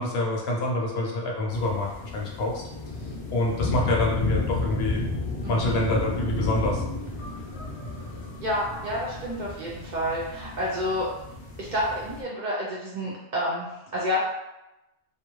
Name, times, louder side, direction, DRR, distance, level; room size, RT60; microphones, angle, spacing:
voice 1, 0.0-2.5 3.3-5.0 5.4-6.8, left 2 dB, 70° left, -1 dB, 0.8 m, -26 dB
sound 1, 1.5-12.2, left 2 dB, 45° left, 0.4 m, -32 dB
voice 2, 5.4-5.8 8.4-11.1 11.6-14.2, equal, 55° right, -5 dB, 0.5 m, -29 dB
2.4 x 2.3 x 3.0 m, 0.94 s
omnidirectional pair, 1.1 m